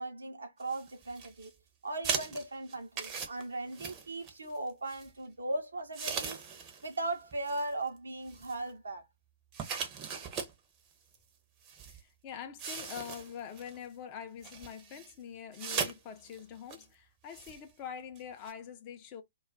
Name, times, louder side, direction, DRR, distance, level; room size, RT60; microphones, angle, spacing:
voice 1, 0.0-1.5 1.8-6.4 6.8-9.1, right 2 dB, 70° right, 0.6 m, -38 dB
sound 1, 0.6-1.5 2.0-4.6 4.9-5.1 5.9-7.0 7.3-7.6 8.3-8.7 9.5-10.5 11.1-11.2 11.6-12.0 12.6-13.8 14.4-15.1 15.5-16.0 16.3-16.4 16.7-16.8 17.3-17.6 18.2-18.3 18.5-18.6, right 6 dB, 25° right, 0.6 m, -38 dB
voice 2, 11.9-19.2, left 8 dB, 30° left, 0.5 m, -45 dB
2.3 x 2.2 x 3.6 m
figure-of-eight pair, 120°, 0 cm